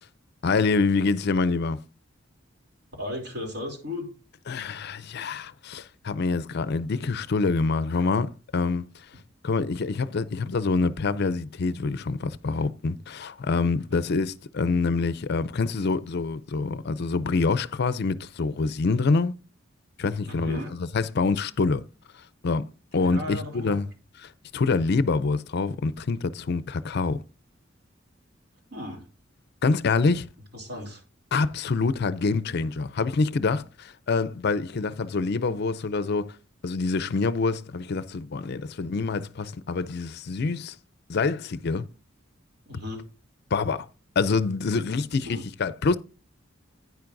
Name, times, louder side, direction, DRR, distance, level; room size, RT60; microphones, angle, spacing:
voice 1, 0.4-1.8 4.5-8.9 9.4-19.3 20.0-21.8 22.4-22.6 22.9-23.9 24.5-27.2 29.6-30.3 31.3-36.3 36.6-40.7 41.1-41.9 43.5-43.9 44.2-46.0, left 4 dB, 55° left, 0.5 m, -26 dB
voice 2, 3.0-4.1 13.9-14.0 20.3-20.7 23.0-23.8 28.7-29.0 30.5-31.0 42.7-43.0 45.2-45.4, left 2 dB, 60° right, 2.9 m, -35 dB
10.5 x 9.4 x 2.6 m
head